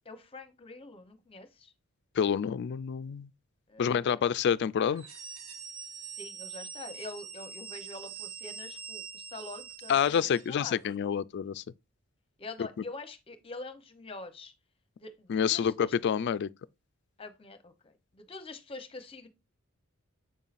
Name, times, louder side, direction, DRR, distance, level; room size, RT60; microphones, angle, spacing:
voice 1, 0.0-1.7 3.7-4.2 6.1-10.8 12.4-14.5 15.0-16.0 17.2-19.3, left 2 dB, 25° left, 0.8 m, -45 dB
voice 2, 2.2-3.3 3.8-5.0 9.9-11.6 12.6-12.7 15.3-16.5, left 7 dB, 55° left, 0.3 m, -28 dB
sound 1, 4.9-10.6, right 6 dB, 70° right, 1.3 m, -44 dB
7.3 x 5.5 x 2.5 m
head